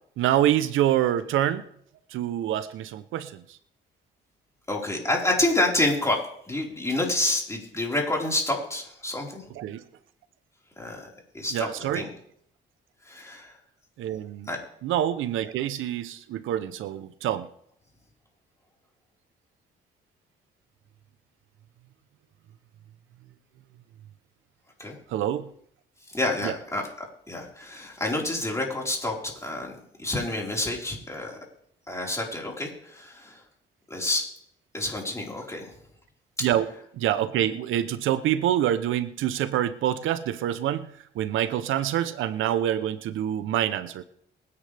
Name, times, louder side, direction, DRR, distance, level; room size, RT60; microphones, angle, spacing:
voice 1, 0.2-1.7 2.1-3.6 9.6-9.8 11.5-12.1 14.0-14.5 14.8-17.5 25.1-25.5 26.4-26.5 36.4-36.7 36.9-44.0, right 11 dB, 85° right, 13 dB, 0.8 m, -26 dB
voice 2, 4.7-6.2 6.5-9.4 10.8-11.1 11.3-11.7 11.9-12.1 13.1-13.5 14.5-14.6 24.8-25.0 26.1-26.8 27.3-29.7 30.0-31.4 31.9-33.4 33.9-34.2 34.7-35.7 36.4-36.5, left 2 dB, 15° left, -2 dB, 4.6 m, -28 dB
24.0 x 9.8 x 3.4 m, 0.68 s
cardioid pair, 90°, 20 cm